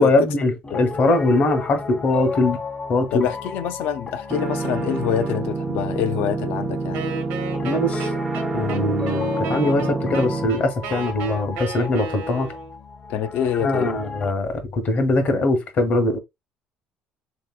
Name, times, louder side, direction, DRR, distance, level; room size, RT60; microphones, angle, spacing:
voice 1, 0.0-2.6 2.9-3.3 7.6-8.1 8.5-12.5 13.6-16.2, left 2 dB, 50° left, 0.9 m, -21 dB
Piano, 0.6-14.3, left 4 dB, 25° left, 0.6 m, -34 dB
voice 2, 3.1-7.0 13.1-14.0, left 9 dB, 75° left, 0.3 m, -26 dB
sound 1, 4.3-10.5, right 3 dB, 25° right, 0.3 m, -27 dB
Wind instrument woodwind instrument, 6.9-12.8, right 2 dB, 85° right, 0.8 m, -33 dB
3.3 x 2.7 x 2.3 m
cardioid pair, 100°, 3 cm